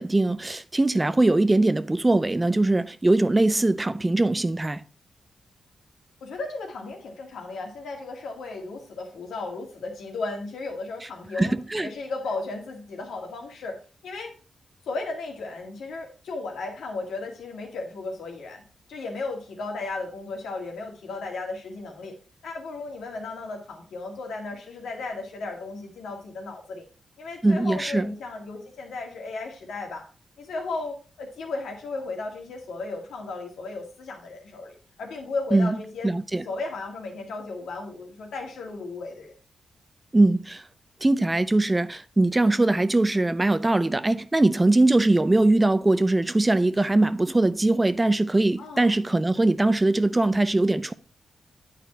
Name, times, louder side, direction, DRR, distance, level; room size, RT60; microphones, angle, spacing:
voice 1, 0.0-4.8 11.4-11.9 27.4-28.1 35.5-35.7 36.0-36.4 40.1-40.6 41.0-50.9, right 2 dB, 20° right, 0.5 m, -21 dB
voice 2, 6.2-11.5 11.8-13.8 14.0-14.3 14.9-18.6 18.9-22.2 22.4-26.9 27.2-30.1 30.4-36.1 36.5-39.3 48.6-48.9, left 3 dB, 85° left, 1.8 m, -35 dB
9.1 x 4.2 x 4.2 m
cardioid pair, 70°, 0 cm